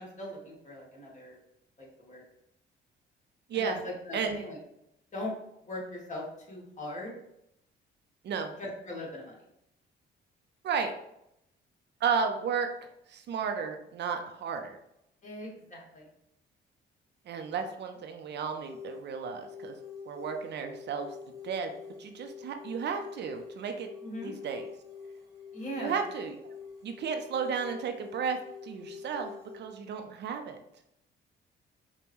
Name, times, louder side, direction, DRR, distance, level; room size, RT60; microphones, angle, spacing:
voice 1, 0.0-1.4 1.8-2.2 3.5-4.6 5.1-5.3 5.6-7.1 8.6-9.4 15.2-16.1 24.0-24.3 25.5-26.0, left 1 dB, 35° left, -3 dB, 1.5 m, -40 dB
voice 2, 12.0-12.7 13.1-14.8 17.3-19.8 20.1-21.1 21.4-21.7 22.0-23.9 24.2-24.7 25.8-26.5 26.8-28.4 28.6-30.6, right 6 dB, 60° right, 6 dB, 0.5 m, -33 dB
sound 1, 18.6-29.6, left 6 dB, 20° right, 1.1 m, -46 dB
5.2 x 2.2 x 3.0 m, 0.80 s
cardioid pair, 90°, 20 cm